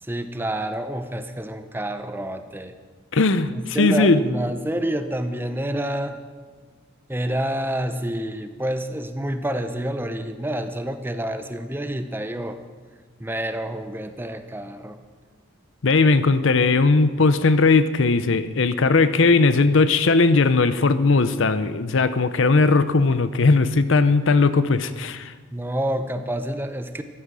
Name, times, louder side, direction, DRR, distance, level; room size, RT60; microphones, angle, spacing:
voice 1, 0.0-2.7 3.5-6.2 7.1-12.6 13.2-15.0 25.5-27.0, right 1 dB, 10° right, 9 dB, 0.7 m, -28 dB
voice 2, 3.1-4.2 15.8-25.3, left 3 dB, 65° left, 13 dB, 0.6 m, -18 dB
14.5 x 12.0 x 6.2 m, 1.5 s
head